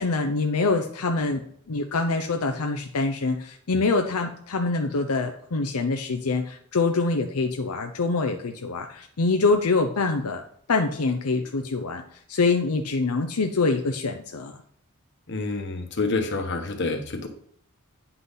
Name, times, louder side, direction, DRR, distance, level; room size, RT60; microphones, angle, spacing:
voice 1, 0.0-10.4 10.7-12.0 12.3-14.5, left 3 dB, 80° left, 4 dB, 0.7 m, -25 dB
voice 2, 15.3-17.3, left 3 dB, 55° left, 5 dB, 1.3 m, -28 dB
9.4 x 5.8 x 4.1 m, 0.63 s
head